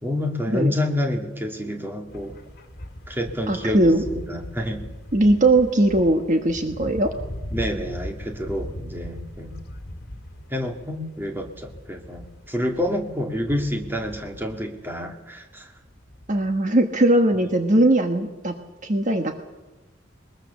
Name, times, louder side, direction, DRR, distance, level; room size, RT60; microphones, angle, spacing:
voice 1, 0.0-2.4 3.1-4.9 7.5-9.5 10.5-15.7, left 1 dB, 10° right, 3 dB, 2.3 m, -28 dB
sound 1, 2.1-15.1 15.9-16.6, left 1 dB, 55° left, 2.5 m, -39 dB
voice 2, 3.5-4.0 5.1-7.1 16.3-18.5 18.8-19.3, right 1 dB, 40° right, 5 dB, 1.4 m, -19 dB
21.5 x 21.0 x 7.1 m, 1.1 s
head